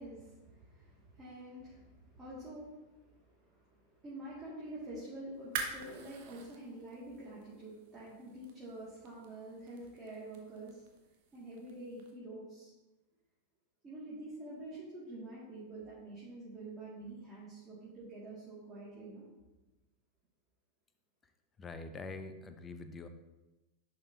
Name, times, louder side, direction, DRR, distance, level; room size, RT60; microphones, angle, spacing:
voice 1, 0.0-10.9 11.3-12.7 13.8-19.3, right 1 dB, 15° right, -8 dB, 2.2 m, -47 dB
sound 1, 5.3-12.1, right 6 dB, 50° right, 1.1 m, -47 dB
voice 2, 21.6-23.1, left 3 dB, 20° left, 8 dB, 0.6 m, -44 dB
10.5 x 5.1 x 2.8 m, 1.1 s
figure-of-eight pair, 90°, 0 cm